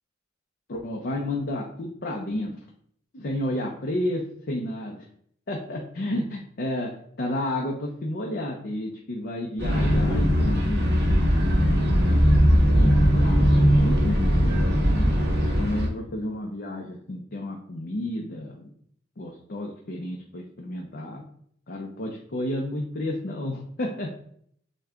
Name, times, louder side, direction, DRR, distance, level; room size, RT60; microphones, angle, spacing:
voice 1, 0.7-2.6 3.1-5.0 5.5-6.9 7.2-11.3 12.0-15.1 15.6-18.7 19.2-21.2 21.7-24.2, left 1 dB, 50° left, 0 dB, 0.6 m, -31 dB
sound 1, 9.6-15.9, equal, 55° right, 1.1 m, -20 dB
6.4 x 2.3 x 3.5 m, 0.64 s
head